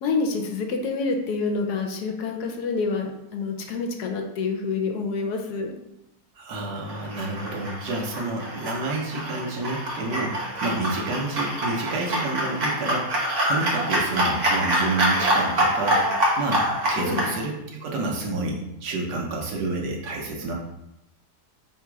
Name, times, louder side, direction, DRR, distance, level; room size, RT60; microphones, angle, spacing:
voice 1, 0.0-5.7 16.9-17.2, left 4 dB, 75° left, 3 dB, 1.2 m, -27 dB
voice 2, 6.4-16.0 16.4-20.5, right 2 dB, 75° right, 0 dB, 1.4 m, -29 dB
sound 1, 6.8-17.3, right 1 dB, 50° right, 1.2 m, -25 dB
3.6 x 2.9 x 4.6 m, 0.86 s
omnidirectional pair, 1.7 m